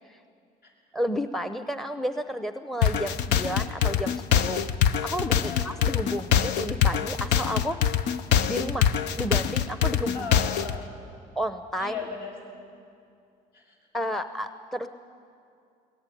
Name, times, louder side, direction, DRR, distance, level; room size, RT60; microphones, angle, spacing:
voice 1, 0.9-4.6 5.0-7.8 8.5-8.9 9.2-10.4 11.4-11.9 13.9-14.9, equal, ahead, 9 dB, 0.7 m, -31 dB
sound 1, 2.8-10.8, left 9 dB, 85° left, 0.8 m, -24 dB
voice 2, 5.5-5.8 10.1-10.9 11.8-12.6 13.5-13.7, left 5 dB, 60° left, 0 dB, 7.4 m, -37 dB
21.5 x 18.5 x 10.0 m, 2.4 s
cardioid pair, 110°, 17 cm